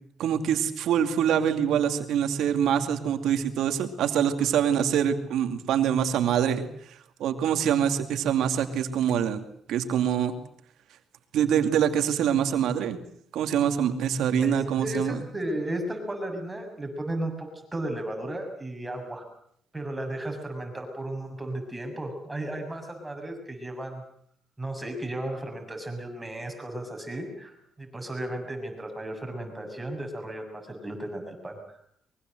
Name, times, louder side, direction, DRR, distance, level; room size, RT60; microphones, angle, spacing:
voice 1, 0.2-6.7 7.2-9.4 9.7-10.3 11.3-13.0 13.3-15.2, right 9 dB, 80° right, 7 dB, 2.5 m, -25 dB
voice 2, 14.4-19.2 19.7-24.0 24.6-31.6, right 1 dB, 15° right, 3 dB, 6.9 m, -34 dB
23.5 x 23.0 x 7.9 m, 0.67 s
cardioid pair, 90°, 0 cm